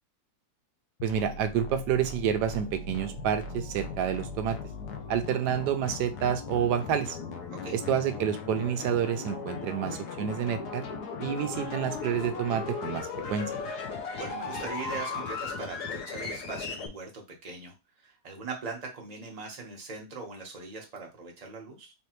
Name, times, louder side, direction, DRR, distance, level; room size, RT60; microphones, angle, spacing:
sound 1, 1.0-16.9, left 4 dB, 75° left, 1.3 m, -37 dB
voice 1, 1.0-4.6 5.1-7.2 7.7-10.8 11.2-13.5, right 8 dB, 85° right, 8 dB, 1.2 m, -29 dB
voice 2, 14.2-21.9, right 4 dB, 30° right, 0 dB, 1.0 m, -41 dB
3.8 x 3.3 x 3.0 m, 0.25 s
omnidirectional pair, 1.7 m